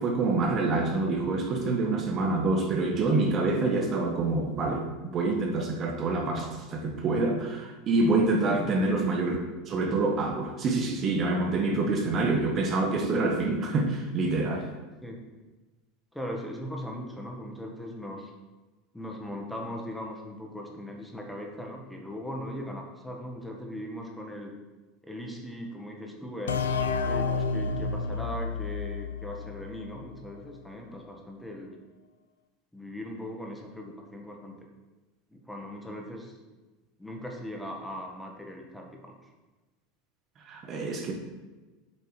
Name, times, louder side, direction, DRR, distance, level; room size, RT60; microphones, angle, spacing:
voice 1, 0.0-9.4 9.7-14.7 40.5-41.1, right 3 dB, 40° right, 2 dB, 1.6 m, -26 dB
voice 2, 16.1-18.3 18.9-24.5 25.0-26.6 27.1-31.7 32.7-34.6 35.3-36.3 37.0-39.2, equal, 5° left, 1 dB, 1.7 m, -39 dB
sound 1, 26.5-30.0, left 4 dB, 90° left, 0.6 m, -30 dB
7.7 x 5.2 x 6.7 m, 1.2 s
hypercardioid pair, 95°, 0 cm